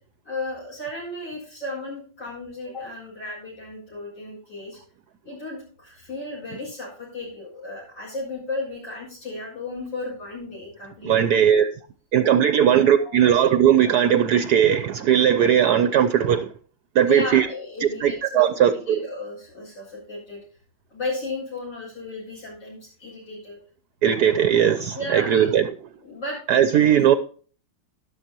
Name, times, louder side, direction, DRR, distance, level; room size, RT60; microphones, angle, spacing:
voice 1, 0.2-4.8 5.2-11.1 12.7-13.3 17.0-20.4 20.9-23.6 24.9-25.5 26.0-26.4, left 2 dB, 70° left, 8.1 m, -34 dB
voice 2, 11.0-11.7 12.1-16.5 16.9-17.5 17.8-19.0 24.0-25.7 26.5-27.2, right 9 dB, 70° right, 1.1 m, -18 dB
12.5 x 12.0 x 2.9 m
omnidirectional pair, 2.0 m